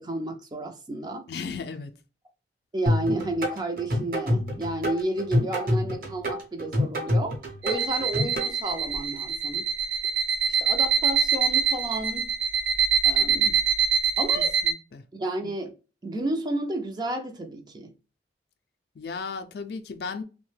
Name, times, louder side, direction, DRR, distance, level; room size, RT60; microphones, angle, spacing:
voice 1, 0.0-1.2 2.7-7.4 7.6-9.7 10.5-12.3 13.0-13.6 14.2-14.5 15.1-15.7 16.0-17.9, right 1 dB, 25° right, 0.4 m, -31 dB
voice 2, 1.3-1.9 14.4-15.0 19.0-20.2, left 5 dB, 60° left, 0.4 m, -35 dB
sound 1, 2.9-8.5, left 1 dB, 50° right, 0.8 m, -27 dB
sound 2, 7.6-14.7, right 6 dB, 80° right, 0.5 m, -24 dB
3.0 x 2.1 x 3.1 m
head